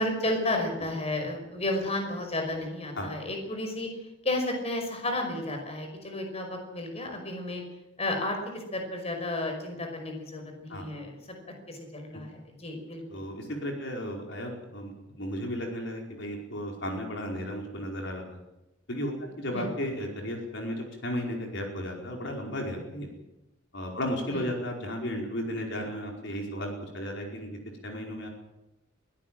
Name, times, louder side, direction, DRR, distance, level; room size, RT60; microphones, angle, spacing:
voice 1, 0.0-3.9 4.2-7.6 8.0-11.2 11.7-13.2 19.5-19.7 24.3-24.5, left 1 dB, 30° left, 4 dB, 5.4 m, -32 dB
voice 2, 13.1-18.4 18.9-23.1 23.7-28.3, equal, 65° left, 1 dB, 4.9 m, -34 dB
22.0 x 17.5 x 7.7 m, 0.94 s
head